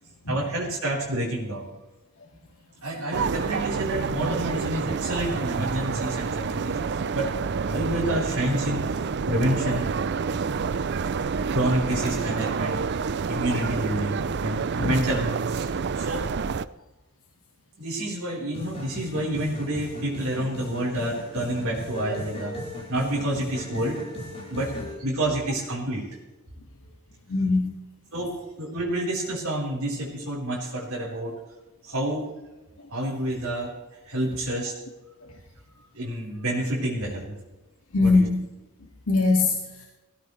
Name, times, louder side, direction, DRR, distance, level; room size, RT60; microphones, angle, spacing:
voice 1, 0.3-1.7 2.8-7.3 7.6-9.9 11.5-12.8 13.3-15.7 15.9-16.3 17.8-22.5 22.9-24.0 24.5-24.7 25.0-26.0 28.1-31.3 31.8-32.3 32.9-33.7 34.1-34.8 35.9-37.3 38.0-38.3, right 1 dB, 70° right, -5 dB, 4.2 m, -28 dB
sound 1, 3.1-16.7, right 5 dB, 50° right, 0.4 m, -28 dB
sound 2, 18.5-25.0, equal, 30° left, 4.5 m, -38 dB
voice 2, 27.3-27.8 37.9-38.5 39.1-39.8, left 3 dB, 65° left, -1 dB, 2.1 m, -22 dB
20.0 x 15.5 x 3.3 m, 1.1 s
head